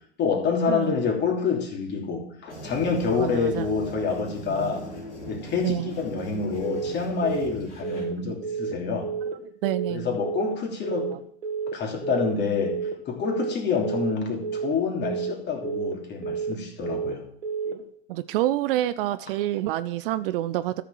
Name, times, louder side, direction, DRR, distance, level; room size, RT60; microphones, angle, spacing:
voice 1, 0.2-4.8 5.3-9.1 9.9-11.1 11.7-12.8 13.1-17.2, left 5 dB, 30° left, 1 dB, 3.0 m, -27 dB
sound 1, 2.5-8.0, right 1 dB, 75° left, 4.0 m, -39 dB
voice 2, 3.1-3.7 5.6-5.9 9.6-10.2 17.7-17.8 18.1-20.8, right 14 dB, 50° right, 14 dB, 0.6 m, -27 dB
Telephone, 6.6-6.9 7.2-7.5 7.8-8.1 8.4-8.7 9.0-9.3 9.6-9.9 10.2-10.5 10.8-11.1 11.4-11.7 12.0-12.3 12.6-12.9 13.2-13.5 13.8-14.1 14.4-14.7 15.0-15.3 15.6-15.9 16.2-16.5 16.8-17.1 17.4-17.7, right 6 dB, 75° right, 2.1 m, -30 dB
13.5 x 6.7 x 4.7 m, 0.65 s
figure-of-eight pair, 90°, 35 cm